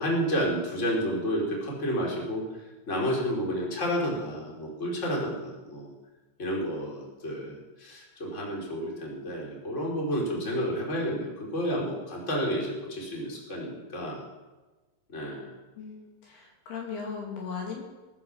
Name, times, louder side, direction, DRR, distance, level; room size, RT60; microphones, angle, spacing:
voice 1, 0.0-5.9 6.4-14.2 15.1-15.5, equal, 15° left, -2 dB, 3.4 m, -31 dB
voice 2, 15.8-17.8, left 5 dB, 65° left, 0 dB, 4.1 m, -37 dB
20.5 x 9.5 x 7.2 m, 1.2 s
omnidirectional pair, 5.1 m